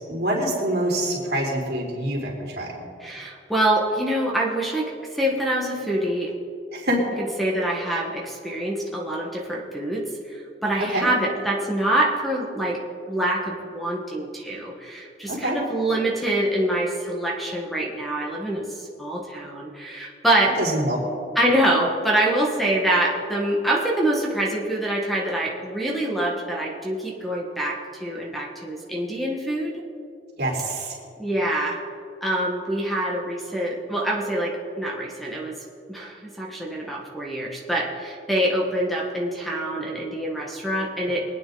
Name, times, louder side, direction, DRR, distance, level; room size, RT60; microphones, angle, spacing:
voice 1, 0.1-2.7 6.7-7.0 10.9-11.1 15.3-15.6 20.6-21.0 30.4-31.0, right 1 dB, 65° right, -3 dB, 3.5 m, -25 dB
voice 2, 3.0-6.3 7.2-12.8 13.1-18.6 19.0-20.6 21.3-29.7 31.2-31.8 32.2-35.5 35.9-41.2, right 1 dB, ahead, -2 dB, 1.6 m, -25 dB
24.0 x 9.3 x 4.0 m, 2.4 s
head